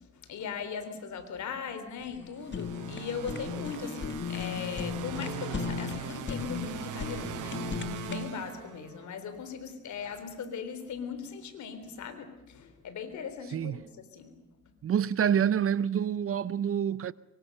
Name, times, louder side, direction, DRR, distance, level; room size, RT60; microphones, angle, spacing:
voice 1, 0.1-13.8 14.1-14.4, left 6 dB, 70° left, 3.8 m, -39 dB
Fire, 2.0-8.3, left 6 dB, 40° left, 2.0 m, -37 dB
sound 1, 2.4-9.1, right 14 dB, 80° right, 0.9 m, -41 dB
voice 2, 14.8-17.1, right 8 dB, 50° right, 0.7 m, -27 dB
24.0 x 24.0 x 6.6 m
cardioid pair, 90°, 30 cm